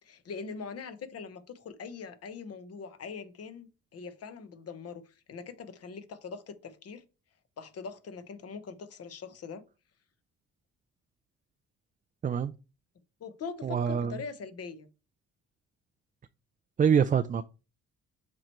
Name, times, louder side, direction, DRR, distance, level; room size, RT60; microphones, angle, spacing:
voice 1, 0.0-7.0 7.6-9.6 13.2-14.9, left 5 dB, 55° left, 1.0 m, -42 dB
voice 2, 12.2-12.5 13.6-14.1 16.8-17.4, right 7 dB, 30° right, 0.4 m, -25 dB
7.4 x 3.1 x 4.5 m
cardioid pair, 90°, 30 cm